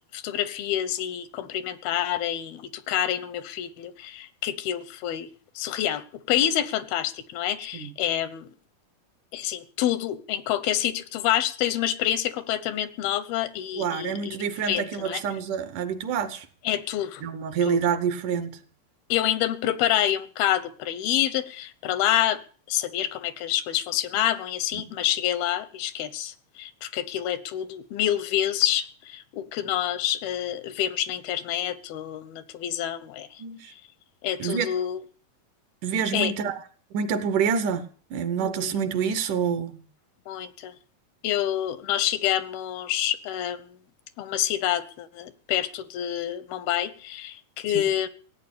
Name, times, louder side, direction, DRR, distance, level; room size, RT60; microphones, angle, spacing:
voice 1, 0.0-5.3 5.6-8.5 9.3-14.4 14.6-15.2 16.6-17.2 17.7-17.8 19.1-22.4 22.7-33.3 34.2-35.0 36.1-36.3 38.4-38.7 40.3-40.7 41.2-43.8 44.2-48.1, left 11 dB, 90° left, 3.0 m, -27 dB
voice 2, 13.7-16.5 17.2-18.6 33.4-33.7 34.4-34.7 35.8-36.6 36.9-37.9 38.1-39.7 47.7-47.8, right 7 dB, 65° right, 2.4 m, -27 dB
16.0 x 9.2 x 8.5 m
omnidirectional pair, 4.2 m